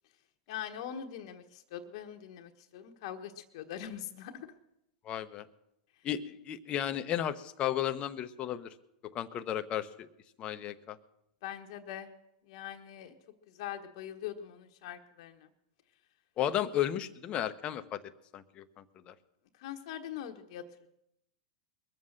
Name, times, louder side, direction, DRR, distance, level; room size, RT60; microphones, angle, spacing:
voice 1, 0.5-4.5 11.4-12.1 12.5-13.1 13.5-15.5 19.6-20.6, left 10 dB, 60° left, 5 dB, 1.2 m, -42 dB
voice 2, 5.0-5.5 6.0-8.7 9.1-9.9 10.4-11.0 16.4-18.0 18.3-19.1, left 11 dB, 30° left, 10 dB, 0.9 m, -34 dB
22.0 x 7.4 x 6.5 m, 0.81 s
hypercardioid pair, 125°, 3 cm